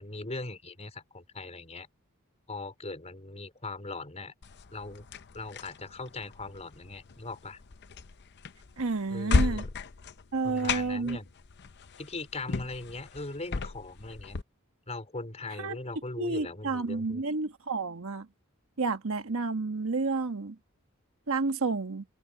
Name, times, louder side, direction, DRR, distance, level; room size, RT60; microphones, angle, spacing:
voice 1, 0.0-1.9 2.5-4.3 4.7-5.0 5.3-7.6 9.1-9.7 10.4-11.3 12.0-14.4 14.9-17.3, left 2 dB, 30° left, 4.7 m, -40 dB
sound 1, 4.4-14.4, left 3 dB, 50° left, 0.7 m, -34 dB
voice 2, 8.8-9.6 10.3-11.2 15.6-15.8 16.2-18.3 18.8-20.6 21.3-22.0, right 3 dB, 70° right, 1.2 m, -30 dB
open air
head